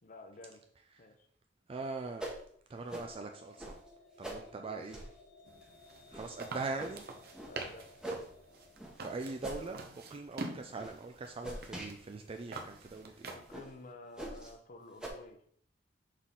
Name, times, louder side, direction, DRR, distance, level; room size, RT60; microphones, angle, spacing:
voice 1, 0.0-0.6 1.0-1.3 4.6-4.9 7.5-7.9 13.3-15.4, left 2 dB, 45° left, 6 dB, 0.8 m, -51 dB
voice 2, 1.7-2.3 2.7-3.8 4.2-5.0 6.1-7.0 9.0-13.3, right 3 dB, 30° right, 5 dB, 0.4 m, -41 dB
sound 1, 2.2-2.4 2.9-3.1 3.6-3.8 4.2-4.4 4.9-5.1 5.6-5.7 6.1-6.3 6.8-7.0 7.3-7.5 8.0-8.3 8.8-9.0 9.4-9.7 10.1-10.3 10.8-10.9 11.4-11.9 12.4-12.5 12.9-13.0 13.5-13.7 14.2-14.5 15.0-15.1, right 1 dB, 5° right, 1.0 m, -42 dB
sound 2, 3.0-8.7, left 3 dB, 85° left, 1.4 m, -60 dB
sound 3, 5.5-13.6, right 3 dB, 60° right, 0.8 m, -47 dB
6.3 x 4.0 x 3.7 m, 0.62 s
head